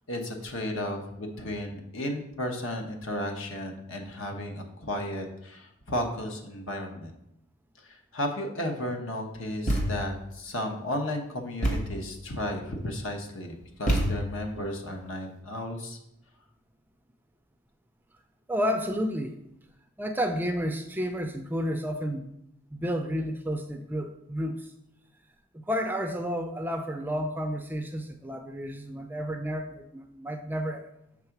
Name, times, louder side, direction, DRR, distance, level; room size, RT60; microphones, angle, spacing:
voice 1, 0.1-7.1 7.8-16.0, left 1 dB, 65° left, 3 dB, 1.1 m, -34 dB
Thump thud, 9.7-10.2 11.6-12.1 13.9-14.5, equal, 35° left, 1.3 m, -27 dB
voice 2, 18.5-19.4 20.0-22.3 22.7-24.7 25.5-30.9, equal, 10° right, 6 dB, 0.4 m, -31 dB
6.5 x 3.7 x 5.9 m, 0.79 s
head